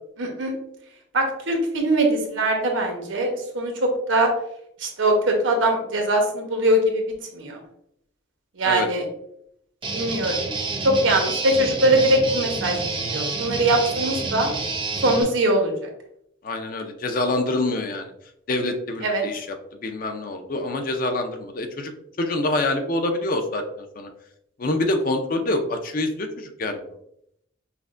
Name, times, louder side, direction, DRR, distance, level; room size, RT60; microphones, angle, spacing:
voice 1, 0.2-0.5 1.1-4.3 4.8-7.0 7.3-7.6 8.6-9.0 9.9-10.4 10.8-14.5 15.0-15.9 19.0-19.2, right 1 dB, 85° right, 2 dB, 0.8 m, -22 dB
Guitar, 9.8-15.2, right 3 dB, 25° right, 0.5 m, -28 dB
voice 2, 16.4-18.1 18.5-19.6 19.8-21.9 22.2-23.6 24.0-24.1 24.6-26.8, left 2 dB, 45° left, 6 dB, 0.5 m, -26 dB
5.7 x 2.1 x 2.5 m, 0.76 s
head